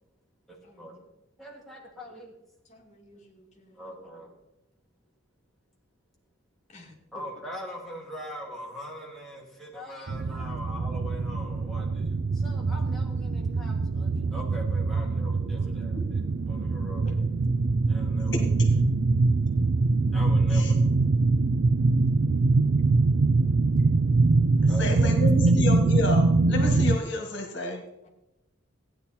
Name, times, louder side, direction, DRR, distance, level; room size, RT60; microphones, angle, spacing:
voice 1, 0.5-1.0 1.4-2.3 3.1-3.2 3.7-4.3 7.1-16.2 16.5-17.2 17.9-18.4 18.7-18.8 20.1-21.0 23.8-23.9 24.7-25.6, equal, ahead, -4 dB, 2.4 m, -42 dB
voice 2, 2.7-3.8 6.7-6.9 17.0-17.2 20.8-20.9 24.7-24.8 28.0-28.1, left 2 dB, 40° left, 0 dB, 2.3 m, -52 dB
sound 1, 10.1-27.0, right 3 dB, 65° right, 0.4 m, -23 dB
voice 3, 24.8-27.8, left 2 dB, 65° left, 3 dB, 1.8 m, -30 dB
15.5 x 9.6 x 4.3 m, 0.89 s
head